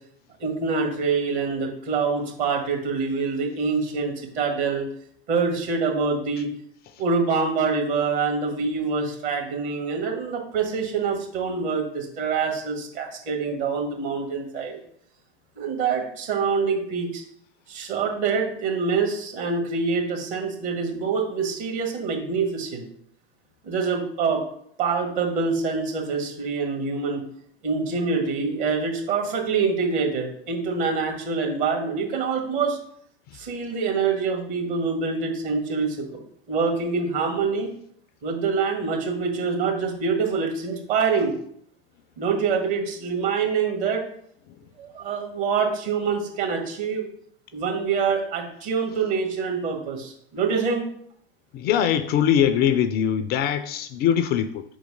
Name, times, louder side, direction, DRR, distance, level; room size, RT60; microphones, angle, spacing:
voice 1, 0.4-4.9 5.3-6.5 7.0-14.8 15.6-17.2 17.7-22.9 23.6-24.4 24.8-27.2 27.6-32.8 33.3-36.2 36.5-37.7 38.2-41.3 42.2-44.0 44.8-47.1 47.5-50.8, right 5 dB, 55° right, 2 dB, 1.8 m, -25 dB
voice 2, 51.5-54.6, left 9 dB, 35° left, 11 dB, 0.4 m, -22 dB
4.7 x 3.9 x 5.1 m, 0.66 s
figure-of-eight pair, 85°, 31 cm